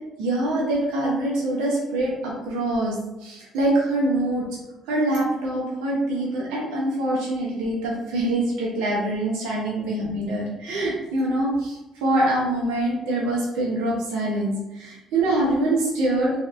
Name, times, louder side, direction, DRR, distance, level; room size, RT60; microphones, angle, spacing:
voice 1, 0.2-4.4 4.9-16.3, right 1 dB, 90° right, -4 dB, 0.6 m, -24 dB
2.7 x 2.4 x 2.4 m, 0.99 s
supercardioid pair, 80°, 0 cm